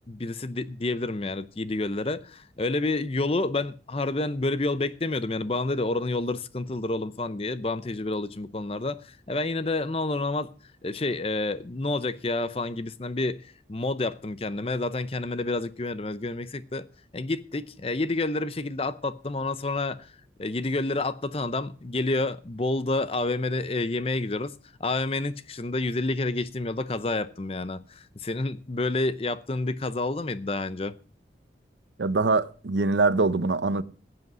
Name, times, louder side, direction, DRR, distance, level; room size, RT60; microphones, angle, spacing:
voice 1, 0.1-10.5 10.8-16.9 17.1-20.1 20.4-24.5 24.8-31.0, left 2 dB, 30° left, 0.6 m, -29 dB
voice 2, 32.0-33.8, right 3 dB, 85° right, 0.7 m, -23 dB
15.0 x 8.0 x 6.1 m
head